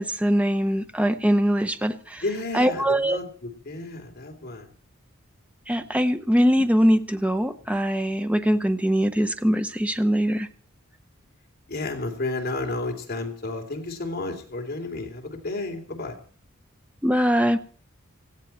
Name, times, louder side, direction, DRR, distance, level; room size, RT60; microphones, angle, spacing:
voice 1, 0.0-2.2 2.5-3.2 5.7-10.5 17.0-17.6, equal, 5° right, 9 dB, 0.8 m, -22 dB
voice 2, 2.2-4.7 11.7-16.2, left 2 dB, 45° left, 2 dB, 3.1 m, -32 dB
18.0 x 15.5 x 4.3 m, 0.42 s
head